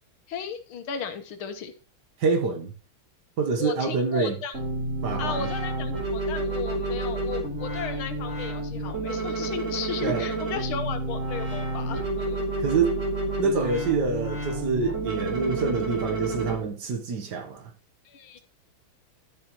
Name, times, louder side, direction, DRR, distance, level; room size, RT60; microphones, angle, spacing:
voice 1, 0.3-1.7 3.6-4.6 5.2-12.5 18.1-18.4, left 6 dB, 80° left, 1.9 m, -35 dB
voice 2, 2.2-2.7 3.4-4.3 5.0-5.5 10.0-10.3 12.6-13.0 13.4-17.7, right 4 dB, 60° right, 1.5 m, -26 dB
sound 1, 4.5-16.5, right 2 dB, 35° right, 3.5 m, -30 dB
12.0 x 6.8 x 3.0 m
omnidirectional pair, 2.3 m